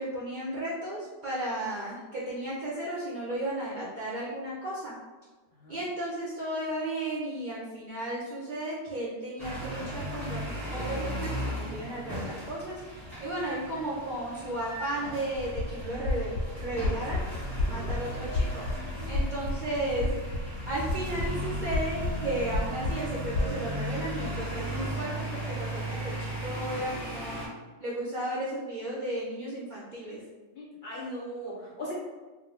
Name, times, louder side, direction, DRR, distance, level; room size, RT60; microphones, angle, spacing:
voice 1, 0.0-4.9 5.7-10.4 10.7-17.2 17.7-20.2 20.7-27.4 27.8-30.2, right 1 dB, 55° right, -7 dB, 0.5 m, -34 dB
sound 1, 9.4-27.5, right 1 dB, 15° right, 0.9 m, -36 dB
sound 2, 15.3-23.5, left 2 dB, 85° left, 1.0 m, -32 dB
voice 2, 30.5-31.9, equal, 55° left, -5 dB, 0.6 m, -39 dB
2.4 x 2.1 x 3.3 m, 1.3 s
omnidirectional pair, 1.3 m